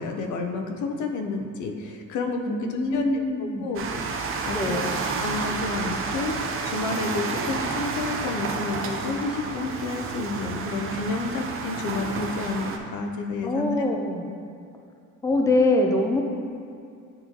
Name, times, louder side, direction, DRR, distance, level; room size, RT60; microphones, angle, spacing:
voice 1, 0.0-3.8 4.5-4.8 5.2-6.3 6.6-13.9, left 3 dB, 75° left, 4 dB, 0.7 m, -30 dB
voice 2, 2.5-3.7 4.5-5.0 13.4-14.3 15.2-16.2, left 2 dB, 10° left, 2 dB, 0.5 m, -24 dB
sound 1, 3.7-12.8, right 4 dB, 45° right, 0.6 m, -30 dB
8.8 x 3.1 x 3.8 m, 2.5 s
cardioid pair, 120°, 30 cm